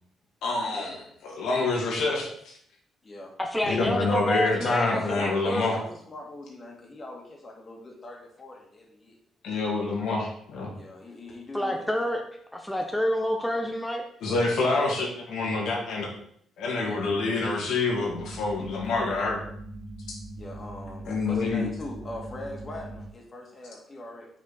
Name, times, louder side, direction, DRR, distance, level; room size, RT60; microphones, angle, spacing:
voice 1, 0.4-2.5 3.6-5.8 9.4-10.7 14.2-16.1 16.6-19.4 21.1-21.7, left 3 dB, 80° left, -1 dB, 1.9 m, -27 dB
voice 2, 3.4-5.7 11.5-12.2 12.5-14.1, equal, 5° left, 3 dB, 0.7 m, -28 dB
voice 3, 4.6-9.2 10.7-12.0 16.8-17.1 20.4-24.3, left 1 dB, 35° left, -1 dB, 1.8 m, -42 dB
sound 1, 18.1-23.1, right 1 dB, 35° right, 2.4 m, -41 dB
6.2 x 4.3 x 4.1 m, 0.66 s
cardioid pair, 90°, 0 cm